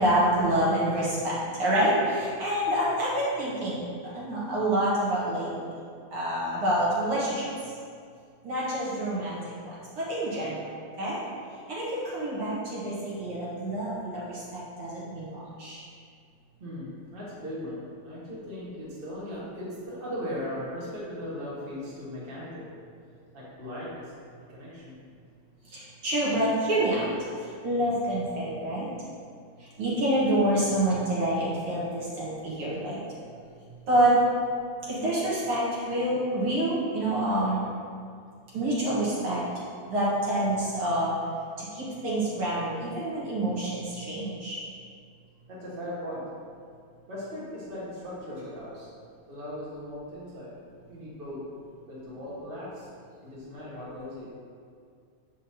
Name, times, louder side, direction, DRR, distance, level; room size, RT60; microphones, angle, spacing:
voice 1, 0.0-1.3 1.6-5.5 6.1-7.5 8.4-10.6 11.0-11.2 11.7-15.8 25.7-27.1 27.4-28.9 29.8-33.0 33.9-34.2 34.9-37.6 38.5-39.4 39.9-41.1 41.6-44.6, right 1 dB, 55° right, -8 dB, 2.0 m, -27 dB
voice 2, 16.6-22.7 23.3-24.1 24.5-24.9 45.5-46.3 47.1-48.9 49.3-50.5 50.9-51.4 51.9-52.9 53.2-54.3, left 1 dB, 30° right, -8 dB, 0.9 m, -38 dB
7.2 x 5.7 x 2.8 m, 2.2 s
omnidirectional pair, 3.3 m